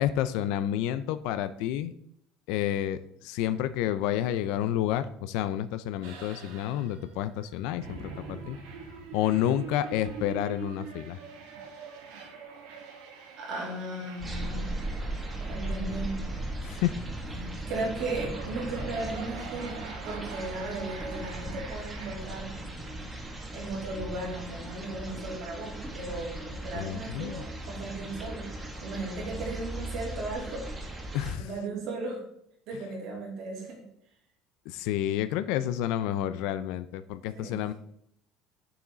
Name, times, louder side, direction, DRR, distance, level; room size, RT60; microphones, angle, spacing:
voice 1, 0.0-1.9 2.5-8.6 9.1-11.2 16.6-16.9 26.7-27.4 31.1-31.5 34.7-37.7, left 12 dB, 70° left, 12 dB, 0.5 m, -30 dB
sound 1, 6.0-22.2, right 6 dB, 90° right, 2.3 m, -45 dB
voice 2, 13.4-14.8 15.5-16.2 17.3-22.6 23.5-28.5 28.8-30.6 31.4-32.2 32.7-33.8 37.3-37.7, right 2 dB, 50° right, -2 dB, 3.3 m, -36 dB
sound 2, 14.2-31.3, right 1 dB, 10° right, 1.3 m, -38 dB
8.6 x 7.2 x 3.9 m, 0.72 s
cardioid pair, 175°, 0 cm